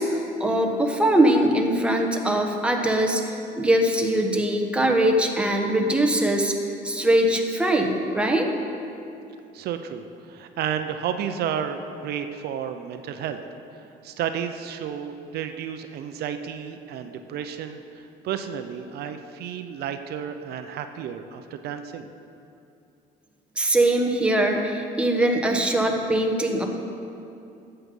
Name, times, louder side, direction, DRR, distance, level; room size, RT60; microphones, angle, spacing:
voice 1, 0.0-6.5 6.8-8.5 23.6-26.6, right 1 dB, 5° right, 2 dB, 1.2 m, -22 dB
voice 2, 9.5-13.4 14.0-22.1, right 8 dB, 70° right, 8 dB, 0.6 m, -32 dB
12.5 x 7.9 x 5.4 m, 2.6 s
cardioid pair, 110°, 17 cm